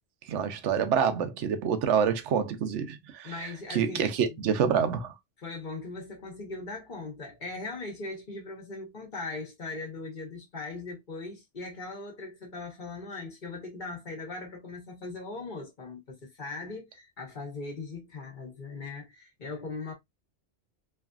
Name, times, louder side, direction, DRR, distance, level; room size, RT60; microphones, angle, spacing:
voice 1, 0.3-3.3 3.7-5.1, right 7 dB, 80° right, 0.9 m, -27 dB
voice 2, 3.2-4.4 5.4-19.9, left 3 dB, 45° left, 1.1 m, -39 dB
3.1 x 2.5 x 2.3 m
omnidirectional pair, 1.2 m